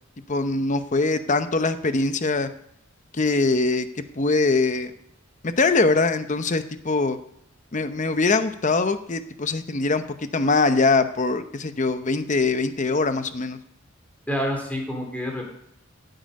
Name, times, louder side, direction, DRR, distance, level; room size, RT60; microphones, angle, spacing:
voice 1, 0.3-2.5 3.1-3.9 4.2-4.9 5.4-7.2 7.7-13.6, left 3 dB, 40° left, 10 dB, 0.8 m, -22 dB
voice 2, 14.3-15.5, equal, 10° left, 1 dB, 3.1 m, -28 dB
16.0 x 8.0 x 5.3 m, 0.75 s
head